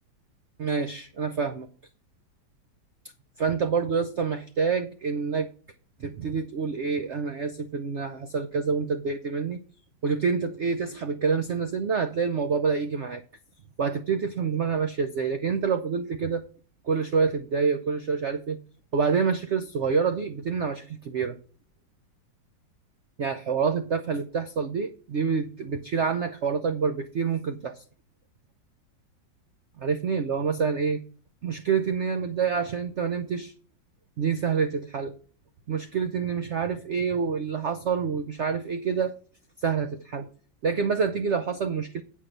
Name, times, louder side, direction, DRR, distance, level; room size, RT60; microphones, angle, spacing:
voice 1, 0.6-1.7 3.4-5.5 6.0-9.6 10.0-13.2 13.8-16.4 16.8-18.6 18.9-21.4 23.2-27.8 29.8-31.0 31.4-33.5 34.2-35.1 35.7-39.1 39.6-40.3 40.6-42.0, right 5 dB, 80° right, 8 dB, 0.6 m, -27 dB
8.5 x 5.5 x 6.6 m, 0.42 s
omnidirectional pair, 2.1 m